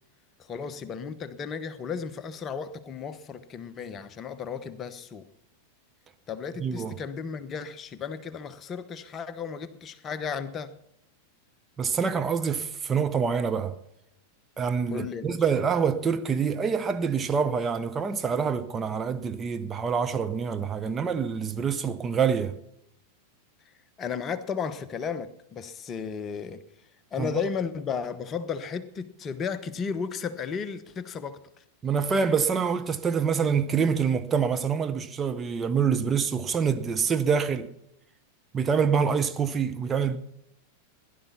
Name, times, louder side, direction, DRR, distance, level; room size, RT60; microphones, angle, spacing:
voice 1, 0.5-5.3 6.3-10.7 14.9-15.4 24.0-26.6 27.1-31.4, left 6 dB, 25° left, 0.9 m, -34 dB
voice 2, 6.6-6.9 11.8-13.8 14.6-22.6 27.2-27.3 31.8-37.7 38.5-40.2, right 6 dB, 20° right, 0.8 m, -26 dB
16.0 x 11.0 x 5.7 m
figure-of-eight pair, 90°, 0 cm